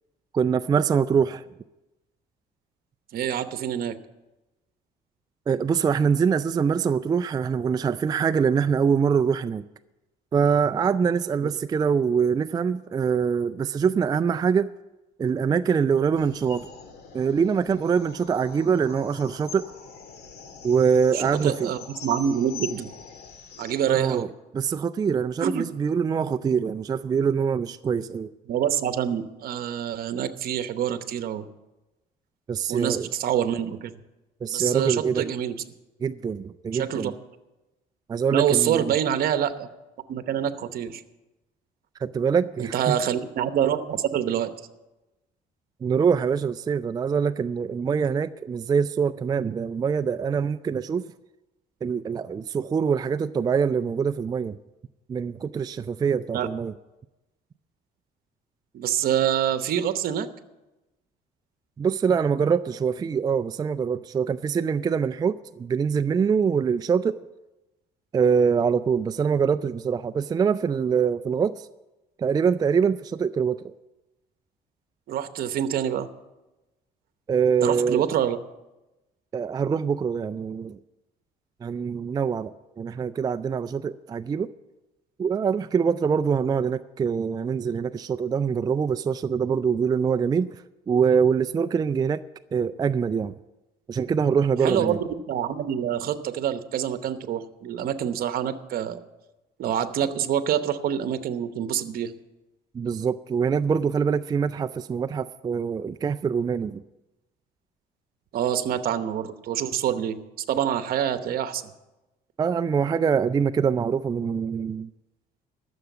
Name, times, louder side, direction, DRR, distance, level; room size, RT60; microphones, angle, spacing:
voice 1, 0.3-1.4 5.5-9.6 10.3-14.7 15.2-16.7 17.1-19.7 20.6-21.7 23.9-24.3 24.5-28.3 32.5-33.1 34.4-35.3 36.0-37.1 38.1-38.9 42.0-43.0 45.8-51.1 51.8-54.6 55.1-56.7 61.8-67.2 68.1-71.7 72.2-73.6 77.3-78.1 79.3-80.8 81.6-82.5 82.8-84.5 85.2-90.6 90.9-92.2 92.5-93.3 93.9-95.0 102.7-106.8 112.4-114.9, right 6 dB, 25° right, 12 dB, 0.3 m, -24 dB
voice 2, 3.1-4.0 11.4-11.5 21.1-22.9 23.6-24.3 25.4-25.6 28.5-31.5 32.7-33.9 34.5-35.6 36.7-37.1 38.3-39.7 40.1-41.0 42.6-44.5 56.3-56.5 58.7-60.3 75.1-76.1 77.6-78.4 94.6-99.0 99.6-102.1 108.3-110.2 110.5-111.7, right 9 dB, 60° right, 10 dB, 1.0 m, -26 dB
sound 1, 16.2-23.7, left 6 dB, 75° left, 1.9 m, -43 dB
13.0 x 6.9 x 8.2 m, 1.0 s
cardioid pair, 110°, 17 cm